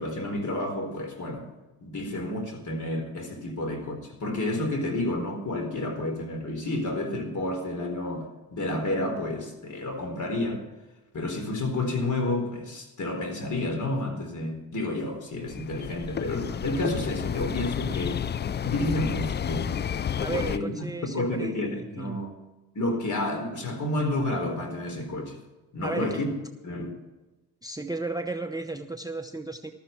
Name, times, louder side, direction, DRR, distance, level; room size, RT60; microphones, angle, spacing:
voice 1, 0.0-1.5 1.8-10.6 11.1-18.2 18.6-19.8 20.3-20.8 21.1-22.3 22.7-25.4 25.7-26.3 26.6-27.0, left 1 dB, 45° left, 6 dB, 4.0 m, -30 dB
sound 1, 15.4-20.6, left 8 dB, 25° left, 0.4 m, -31 dB
voice 2, 20.2-22.2 25.8-26.2 27.6-29.7, right 3 dB, 10° right, 9 dB, 0.8 m, -34 dB
14.0 x 13.0 x 4.5 m, 1.1 s
supercardioid pair, 75°, 43 cm